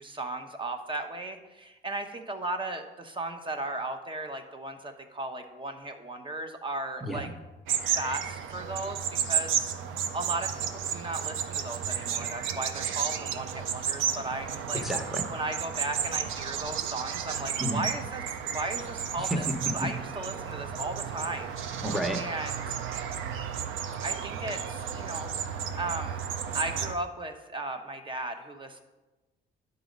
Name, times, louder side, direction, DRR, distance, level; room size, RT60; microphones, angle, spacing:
voice 1, 0.0-7.3 8.0-14.8 15.3-19.3 19.7-21.8 22.2-22.5 24.0-25.3 25.8-26.2 26.5-28.8, right 2 dB, 25° right, 6 dB, 0.9 m, -36 dB
voice 2, 7.0-7.3 14.7-15.3 17.6-17.8 19.2-19.9 21.8-22.2, equal, ahead, 4 dB, 1.0 m, -31 dB
sound 1, 7.7-26.9, right 8 dB, 85° right, 0.6 m, -33 dB
10.5 x 4.2 x 5.2 m, 1.1 s
cardioid pair, 90°, 20 cm